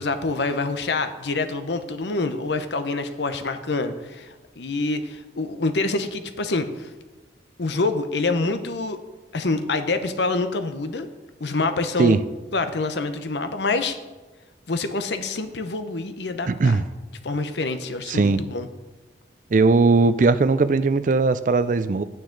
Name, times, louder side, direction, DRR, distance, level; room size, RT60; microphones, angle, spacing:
voice 1, 0.0-6.9 7.6-9.0 9.3-11.1 11.4-12.2 12.5-14.0 14.7-16.8 17.2-18.7, left 3 dB, 80° left, 9 dB, 0.8 m, -26 dB
voice 2, 16.5-16.8 18.1-18.4 19.5-22.0, right 3 dB, 45° right, 13 dB, 0.4 m, -19 dB
9.6 x 8.9 x 3.9 m, 1.2 s
head